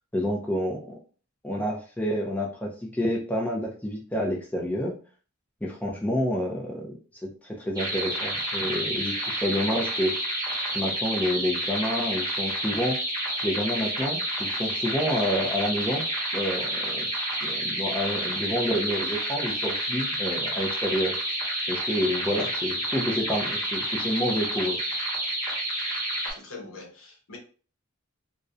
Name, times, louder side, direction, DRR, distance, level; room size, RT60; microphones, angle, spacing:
voice 1, 0.1-0.9 1.4-4.9 5.6-7.0 7.4-10.2 10.7-13.0 13.4-16.0 16.3-17.1 17.4-21.1 21.7-24.8, equal, 5° left, -1 dB, 0.4 m, -28 dB
sound 1, 7.8-26.3, right 1 dB, 15° right, 0.9 m, -29 dB
voice 2, 26.3-27.4, left 3 dB, 70° left, 1 dB, 0.8 m, -43 dB
2.4 x 2.1 x 2.6 m, 0.39 s
head